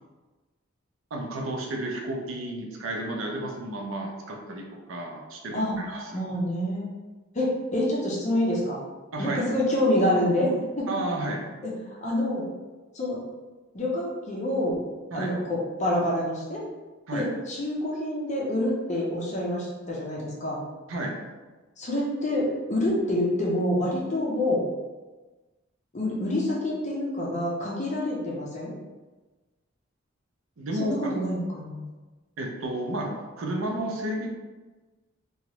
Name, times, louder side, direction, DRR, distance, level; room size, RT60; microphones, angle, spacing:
voice 1, 1.1-6.2 9.1-9.4 10.9-11.4 15.1-15.3 17.1-17.3 20.9-21.2 30.6-31.1 32.4-34.3, right 1 dB, 90° right, 1 dB, 0.5 m, -32 dB
voice 2, 6.1-6.9 7.3-8.8 9.2-10.5 10.8-10.9 11.6-12.5 12.9-13.2 13.7-14.8 15.1-16.6 17.1-20.6 21.8-24.6 25.9-28.7 30.8-31.8, left 1 dB, 35° left, -4 dB, 0.6 m, -27 dB
2.9 x 2.3 x 2.9 m, 1.2 s
head